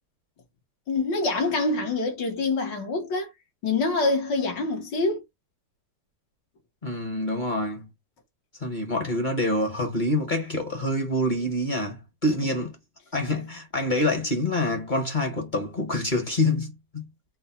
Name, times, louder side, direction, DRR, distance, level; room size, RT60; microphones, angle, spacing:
voice 1, 0.9-3.3 3.6-5.2, left 3 dB, 80° left, 1.9 m, -25 dB
voice 2, 6.8-7.9 8.6-12.7 13.1-17.1, left 1 dB, 35° left, 0.8 m, -26 dB
4.4 x 2.1 x 4.1 m
omnidirectional pair, 1.9 m